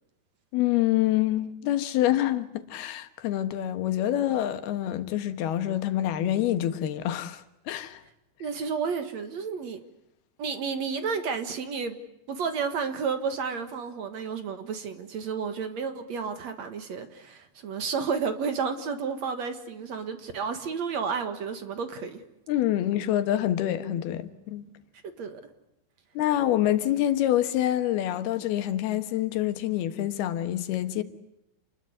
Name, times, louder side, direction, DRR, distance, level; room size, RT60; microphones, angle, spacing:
voice 1, 0.5-8.0 22.5-24.6 26.1-31.0, left 13 dB, 90° left, 3.3 m, -26 dB
voice 2, 8.4-9.8 10.4-12.0 12.3-22.2 25.2-25.4, right 5 dB, 55° right, 2.4 m, -31 dB
28.5 x 21.0 x 9.7 m
omnidirectional pair, 4.4 m